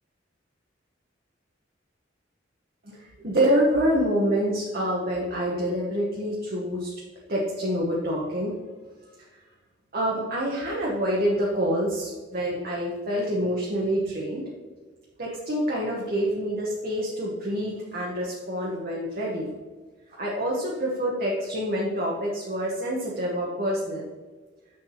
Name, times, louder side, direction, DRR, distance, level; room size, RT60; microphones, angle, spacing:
voice 1, 2.8-6.9 7.3-8.6 9.2-9.3 9.9-14.5 15.2-19.5 20.1-24.1, equal, 50° right, -4 dB, 1.1 m, -27 dB
7.6 x 6.5 x 2.9 m, 1.4 s
head